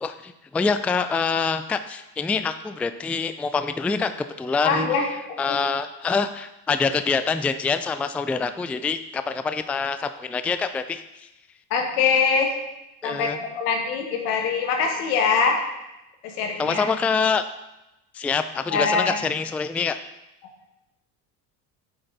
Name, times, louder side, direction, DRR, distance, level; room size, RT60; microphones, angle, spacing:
voice 1, 0.0-4.1 4.4-4.9 5.4-11.3 13.0-13.4 16.6-17.4 18.1-20.0, left 5 dB, 5° left, 10 dB, 0.3 m, -25 dB
voice 2, 4.6-5.1 5.5-5.6 11.7-12.5 13.0-15.6 16.2-16.8 18.7-19.2, left 5 dB, 85° left, 2 dB, 1.9 m, -23 dB
8.7 x 7.9 x 4.0 m, 0.92 s
supercardioid pair, 85°, 44 cm